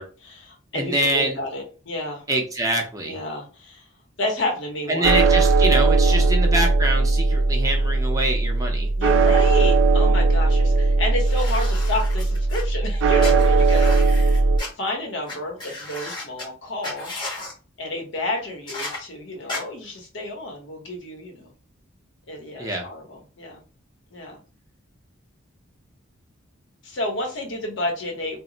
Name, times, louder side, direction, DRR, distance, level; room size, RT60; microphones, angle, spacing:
voice 1, 0.2-2.2 3.0-3.9 4.2-5.1 6.0-6.3 9.0-14.0 14.8-17.1 17.8-21.5 22.3-23.6 24.1-24.4 26.8-28.4, left 1 dB, 60° left, 1 dB, 0.9 m, -30 dB
voice 2, 0.7-1.4 2.3-3.2 4.9-8.9 22.6-22.8, right 1 dB, 15° right, 1 dB, 0.5 m, -25 dB
sound 1, 5.0-14.6, right 3 dB, 65° right, 0.3 m, -18 dB
sound 2, 11.2-12.6 13.2-14.7 15.3-15.4 15.6-16.4 16.8-17.5 18.7-19.0 19.5-19.6, left 2 dB, 20° left, 0.8 m, -34 dB
2.1 x 2.0 x 3.7 m, 0.37 s
head